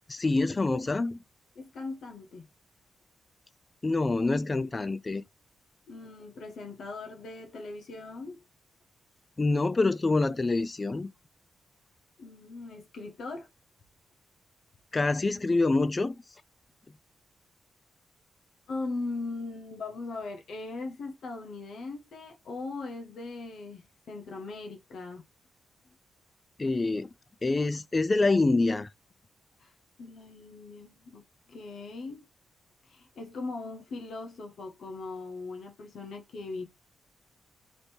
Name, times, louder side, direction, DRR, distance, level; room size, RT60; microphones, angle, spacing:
voice 1, 0.1-1.2 3.8-5.2 9.4-11.1 14.9-16.2 26.6-27.1 27.4-28.9, left 3 dB, 35° left, 0.3 m, -26 dB
voice 2, 1.5-2.5 5.9-8.4 12.2-13.5 18.7-25.2 29.6-29.7 30.0-32.2 32.8-36.6, left 3 dB, 70° left, 0.7 m, -39 dB
3.0 x 2.6 x 3.3 m
supercardioid pair, 45°, 0 cm